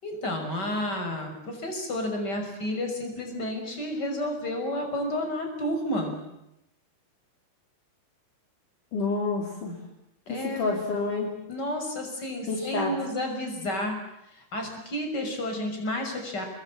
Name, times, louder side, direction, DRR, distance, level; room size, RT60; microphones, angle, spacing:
voice 1, 0.0-6.2 10.3-10.7 11.5-14.0 14.3-16.4, left 1 dB, 25° left, 4 dB, 6.3 m, -31 dB
voice 2, 8.9-9.8 10.3-11.4 12.5-12.9, left 3 dB, 55° left, 1 dB, 4.5 m, -28 dB
29.5 x 22.0 x 8.9 m, 0.84 s
omnidirectional pair, 4.7 m